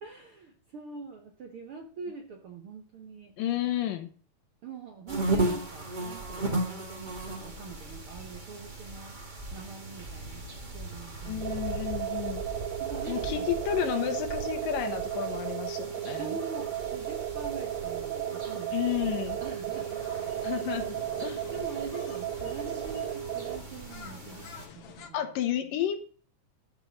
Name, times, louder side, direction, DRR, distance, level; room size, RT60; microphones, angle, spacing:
voice 1, 0.0-4.0 4.6-9.2 9.5-11.6 12.8-13.6 16.2-20.0 21.2-25.3, right 4 dB, 65° right, 3 dB, 1.4 m, -44 dB
voice 2, 3.4-4.1 11.3-12.4 13.1-16.3 18.7-19.4 20.4-21.5 25.1-26.0, left 11 dB, 80° left, 7 dB, 2.8 m, -31 dB
sound 1, 5.1-24.7, right 2 dB, 30° right, 0.8 m, -37 dB
sound 2, 11.4-23.6, right 11 dB, 90° right, 3.0 m, -34 dB
sound 3, 19.7-25.1, left 7 dB, 60° left, 1.6 m, -49 dB
12.0 x 4.8 x 7.3 m, 0.43 s
omnidirectional pair, 3.9 m